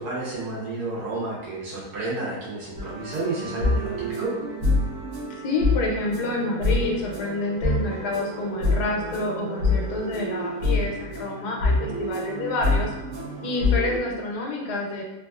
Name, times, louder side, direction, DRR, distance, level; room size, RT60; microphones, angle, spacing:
voice 1, 0.0-4.3, right 3 dB, 80° right, -5 dB, 1.4 m, -31 dB
sound 1, 2.8-14.0, left 2 dB, 60° right, 0.9 m, -27 dB
voice 2, 5.3-12.9 13.4-15.0, left 2 dB, 85° left, 0 dB, 1.2 m, -28 dB
3.2 x 2.3 x 2.3 m, 1.0 s
omnidirectional pair, 1.7 m